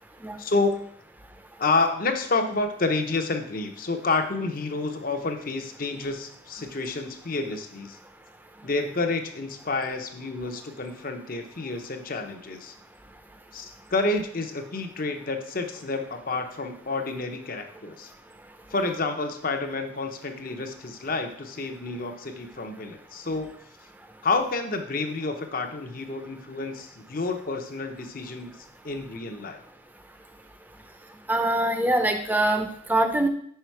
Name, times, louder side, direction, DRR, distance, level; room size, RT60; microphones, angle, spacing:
voice 1, 0.4-0.8 1.6-8.0 8.6-12.7 13.5-18.1 18.7-23.5 24.2-28.5 28.8-29.6, left 3 dB, 45° left, 6 dB, 0.8 m, -29 dB
voice 2, 31.3-33.3, right 1 dB, 10° right, 6 dB, 0.6 m, -23 dB
5.7 x 5.5 x 4.5 m, 0.66 s
head